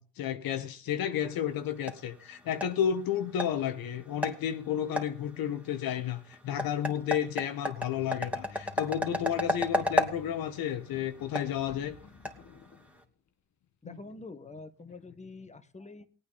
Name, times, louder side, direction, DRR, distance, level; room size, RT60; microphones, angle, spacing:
voice 1, 0.0-11.9 13.8-14.0, left 9 dB, 65° left, 1.3 m, -32 dB
sound 1, 1.2-13.0, left 1 dB, 5° right, 2.4 m, -35 dB
sound 2, 7.9-13.3, left 7 dB, 45° left, 1.6 m, -52 dB
voice 2, 13.8-16.1, left 3 dB, 20° left, 1.6 m, -46 dB
19.5 x 8.8 x 4.2 m
hypercardioid pair, 60°, 38 cm